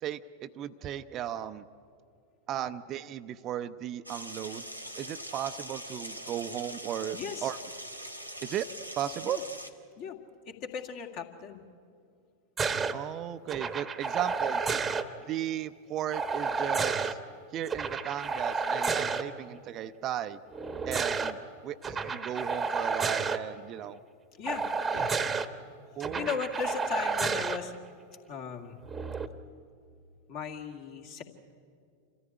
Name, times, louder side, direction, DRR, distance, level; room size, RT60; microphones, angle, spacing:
voice 1, 0.0-1.6 2.5-4.6 5.0-7.6 8.4-8.7 9.0-9.4 12.9-14.8 15.3-17.2 17.5-20.4 20.9-24.0 24.9-25.0 26.0-26.3, right 11 dB, 35° right, 11 dB, 0.6 m, -36 dB
sound 1, 4.1-9.7, equal, 90° left, 1.3 m, -42 dB
voice 2, 7.1-7.5 9.2-9.4 10.0-10.2 10.5-11.6 15.1-15.4 23.8-23.9 24.4-24.6 24.9-25.1 26.0-27.7 28.1-28.8 30.3-31.2, left 6 dB, 45° left, 4 dB, 2.1 m, -37 dB
sound 2, 12.6-12.9 13.5-15.0 16.1-17.1 17.7-19.2 20.5-21.3 21.8-23.4 24.5-25.5 26.0-27.6 28.9-29.3, right 5 dB, 15° right, 1.1 m, -31 dB
27.5 x 14.0 x 9.8 m, 2.3 s
figure-of-eight pair, 90°, 0 cm